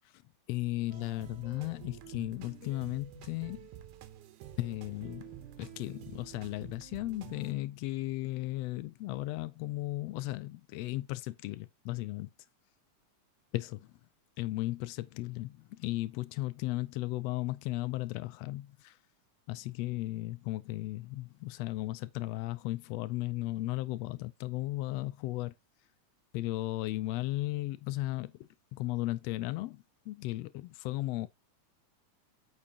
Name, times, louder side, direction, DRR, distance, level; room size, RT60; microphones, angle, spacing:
voice 1, 0.5-3.7 4.6-12.3 13.5-13.8 14.4-19.0 19.5-25.5 26.3-31.3, left 18 dB, 85° left, 1.4 m, -36 dB
sound 1, 0.9-7.5, right 12 dB, 80° right, 2.3 m, -49 dB
8.5 x 5.3 x 2.8 m
omnidirectional pair, 3.5 m